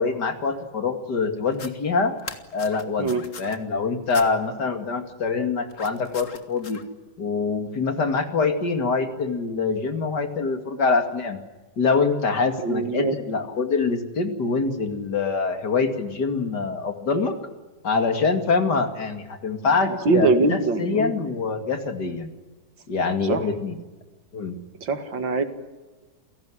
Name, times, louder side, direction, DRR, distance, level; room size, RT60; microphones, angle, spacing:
voice 1, 0.0-2.1 2.5-6.8 7.2-11.4 11.8-17.4 17.8-22.3 22.9-23.8 24.3-24.5, left 4 dB, 65° left, 7 dB, 2.9 m, -25 dB
sound 1, 1.5-1.7 2.2-3.6 4.1-4.3 5.7-6.8, left 5 dB, 45° left, 1.9 m, -39 dB
voice 2, 12.6-13.1 19.9-21.1 23.3-23.5 24.8-25.4, right 3 dB, 80° right, 9 dB, 2.8 m, -22 dB
29.0 x 17.5 x 9.9 m, 1.2 s
omnidirectional pair, 2.0 m